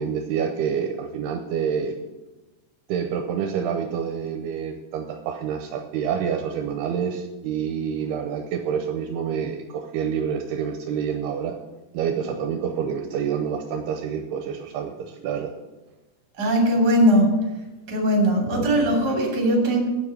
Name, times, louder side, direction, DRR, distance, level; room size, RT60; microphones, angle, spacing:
voice 1, 0.0-2.0 2.9-11.6 11.9-15.5, right 7 dB, 80° right, 5 dB, 2.5 m, -27 dB
voice 2, 16.4-17.4 17.9-19.8, equal, 30° right, 0 dB, 2.5 m, -19 dB
9.2 x 7.1 x 8.3 m, 1.1 s
omnidirectional pair, 5.0 m